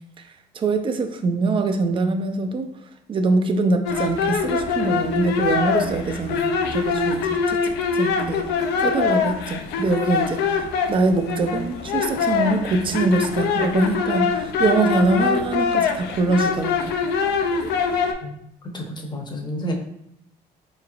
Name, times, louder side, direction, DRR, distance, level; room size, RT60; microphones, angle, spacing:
voice 1, 0.5-2.7 3.1-8.5 8.8-16.9, right 3 dB, 30° right, 7 dB, 0.4 m, -23 dB
sound 1, 3.9-18.1, left 5 dB, 80° left, 0.4 m, -23 dB
voice 2, 18.7-19.7, equal, 25° left, 2 dB, 0.7 m, -30 dB
3.9 x 3.1 x 2.4 m, 0.76 s
cardioid pair, 110°, 17 cm